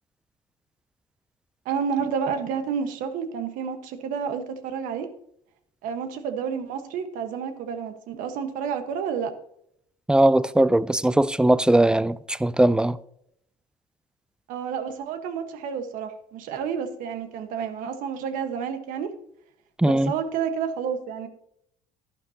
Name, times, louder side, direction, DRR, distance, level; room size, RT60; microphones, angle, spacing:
voice 1, 1.6-5.1 5.8-9.3 14.5-19.1 19.8-21.3, right 7 dB, 75° right, 1.3 m, -30 dB
voice 2, 10.1-13.0 19.8-20.1, right 1 dB, 5° right, 0.4 m, -19 dB
11.5 x 11.0 x 2.8 m
cardioid pair, 105°, 14 cm